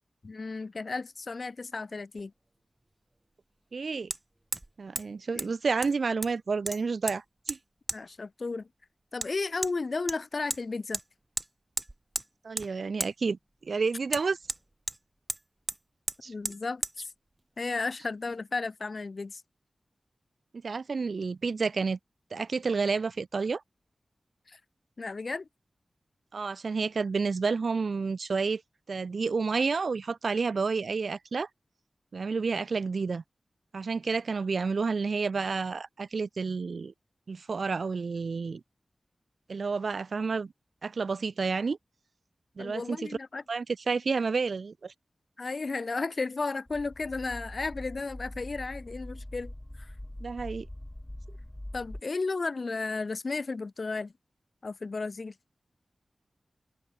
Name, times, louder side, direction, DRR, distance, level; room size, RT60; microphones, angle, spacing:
voice 1, 0.2-2.3 5.3-5.5 7.9-8.7 9.1-11.0 16.3-17.1 17.6-19.4 24.5-24.6 25.0-25.5 42.6-43.4 45.4-49.5 49.8-49.9 51.7-54.1 54.6-55.3, left 3 dB, 50° left, 1.5 m, -34 dB
Hammer, 2.2-2.3 4.1-4.2 4.5-4.7 5.0-5.1 5.4-5.5 5.8-6.4 6.7-7.2 7.5-7.6 7.9-8.0 9.2-9.3 9.6-9.7 10.1-10.6 10.9-11.1 11.4-11.5 11.8-12.3 12.6-12.7 13.0-13.1 14.1-15.0 15.3-15.4 15.7-15.8 16.1-16.2 16.4-16.6 16.8-16.9, right 1 dB, 20° right, 3.2 m, -34 dB
voice 2, 3.7-4.1 4.8-7.6 12.4-14.4 16.2-16.3 20.6-22.0 22.3-23.6 26.3-28.6 28.9-31.5 32.1-33.2 33.7-36.9 37.3-38.6 39.5-40.5 40.8-41.8 42.6-43.1 43.5-44.9 50.2-50.7, right 4 dB, 70° right, 1.4 m, -30 dB
sound 1, 46.7-52.0, left 1 dB, 15° left, 3.4 m, -43 dB
open air
wide cardioid pair, 110°, 0 cm